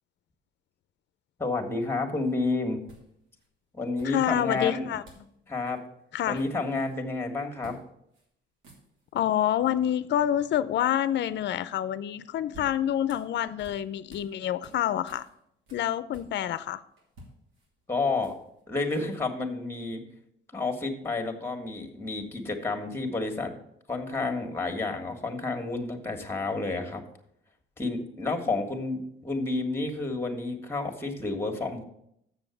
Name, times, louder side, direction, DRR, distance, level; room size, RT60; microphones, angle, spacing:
voice 1, 1.4-2.8 3.7-4.9 5.5-5.8 6.3-7.8 17.9-18.3 18.7-20.0 20.5-23.5 23.9-27.0 27.8-31.8, left 3 dB, 10° left, 4 dB, 1.7 m, -30 dB
sound 1, 2.2-2.3 2.9-3.5 4.0-4.6 5.0-5.3 5.6-5.8 6.1-7.0 7.6-7.8 8.1-8.3 8.5-9.2 12.1-14.3 14.6-16.6 17.0-18.6, equal, 85° right, 2.7 m, -53 dB
voice 2, 4.0-5.0 6.1-6.4 9.1-15.3 15.7-16.8, left 11 dB, 65° left, 15 dB, 0.5 m, -27 dB
6.9 x 6.9 x 7.0 m, 0.76 s
cardioid pair, 90°, 20 cm